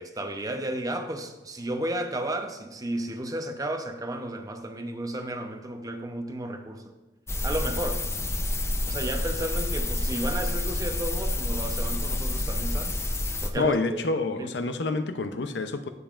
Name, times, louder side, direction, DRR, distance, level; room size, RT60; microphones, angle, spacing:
voice 1, 0.0-6.9 7.4-8.0 8.8-12.9 13.4-14.0 14.4-14.5, right 1 dB, 20° right, 6 dB, 0.7 m, -33 dB
sound 1, 7.3-13.5, left 1 dB, 15° left, 0.6 m, -28 dB
voice 2, 13.5-15.9, left 3 dB, 80° left, 9 dB, 0.6 m, -28 dB
15.5 x 5.4 x 2.5 m, 1.1 s
head